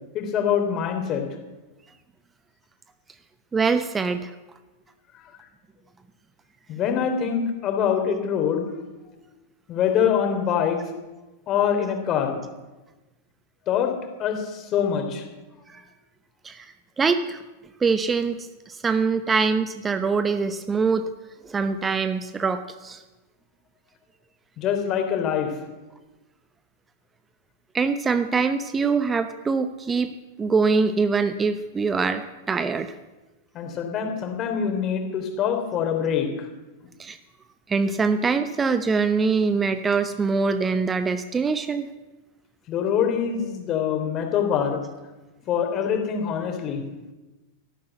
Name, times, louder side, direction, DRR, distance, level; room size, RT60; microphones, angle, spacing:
voice 1, 0.1-1.3 5.2-5.3 6.7-8.6 9.7-10.8 11.5-12.4 13.7-13.9 14.2-15.2 24.6-25.5 33.5-36.5 42.7-44.8 45.5-46.8, left 8 dB, 35° left, 5 dB, 3.3 m, -24 dB
voice 2, 3.5-4.3 15.7-15.8 16.4-16.6 17.0-17.4 17.8-21.1 21.4-23.0 27.7-30.1 30.4-32.2 32.5-32.9 37.0-37.2 37.7-41.9, right 4 dB, 20° right, 10 dB, 0.9 m, -23 dB
14.0 x 12.0 x 8.0 m, 1.1 s
figure-of-eight pair, 95°, 0 cm